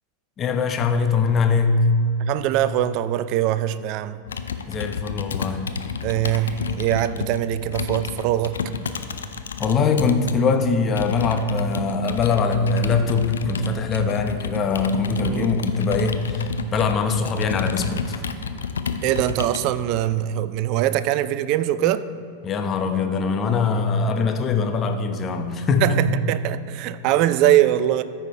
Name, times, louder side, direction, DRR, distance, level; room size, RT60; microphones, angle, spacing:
voice 1, 0.4-1.9 4.7-5.7 9.6-18.2 22.4-26.0, left 4 dB, 25° left, 6 dB, 0.8 m, -22 dB
voice 2, 2.2-4.2 6.0-8.6 15.3-15.5 19.0-22.1 25.8-28.0, right 12 dB, 40° right, 15 dB, 0.3 m, -22 dB
Computer keyboard, 4.3-10.4 11.0-19.7, left 6 dB, 70° left, 0.5 m, -30 dB
14.0 x 5.7 x 4.3 m, 2.6 s
figure-of-eight pair, 90°, 0 cm